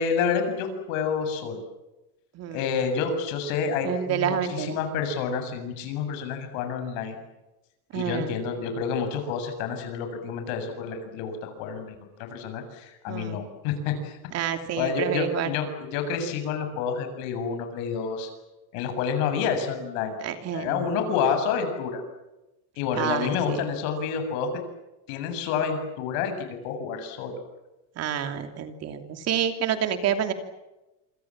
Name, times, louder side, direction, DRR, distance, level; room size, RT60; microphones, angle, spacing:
voice 1, 0.0-1.6 2.5-7.2 7.9-14.2 14.7-18.3 18.7-20.2 20.5-22.0 22.8-24.5 25.1-27.5, left 6 dB, 85° left, 7 dB, 7.4 m, -29 dB
voice 2, 2.3-2.7 3.8-4.8 7.9-8.3 13.1-13.4 14.3-15.5 20.2-20.9 23.0-23.7 28.0-30.3, right 9 dB, 40° right, 7 dB, 2.9 m, -28 dB
27.5 x 26.5 x 7.4 m, 1.0 s
cardioid pair, 170°, 39 cm